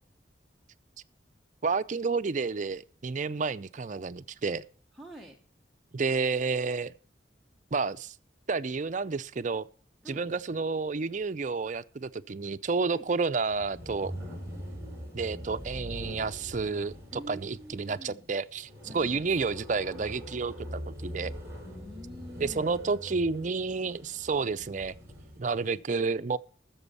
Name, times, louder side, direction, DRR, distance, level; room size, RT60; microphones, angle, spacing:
voice 1, 1.6-4.7 5.9-6.9 7.7-8.1 8.5-9.7 10.1-14.1 15.1-21.3 22.4-25.0 25.4-26.4, right 4 dB, 45° right, 0.5 m, -30 dB
voice 2, 4.9-5.4 10.0-10.2 12.9-13.1 17.1-18.3 18.8-19.2 21.6-22.7, equal, ahead, 1.0 m, -46 dB
sound 1, 13.5-25.5, equal, 15° right, 3.8 m, -43 dB
13.5 x 7.0 x 5.5 m
head